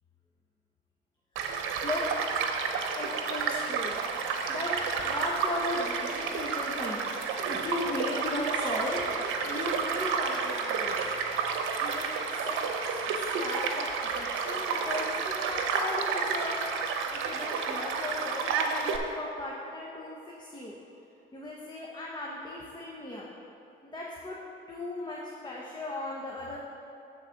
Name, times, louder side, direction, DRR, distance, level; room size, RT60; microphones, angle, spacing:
voice 1, 1.4-2.0 3.0-4.0 4.5-4.8 5.0-7.0 7.4-9.1 9.4-11.1 11.8-16.6 17.1-20.8 21.3-23.3 23.8-24.4 24.7-26.6, left 2 dB, 20° left, -3 dB, 1.0 m, -37 dB
Child speech kid speaking / Stream / Car passing by, 1.4-19.0, right 5 dB, 90° right, 0.7 m, -31 dB
9.1 x 4.1 x 6.5 m, 2.8 s
cardioid pair, 90°, 20 cm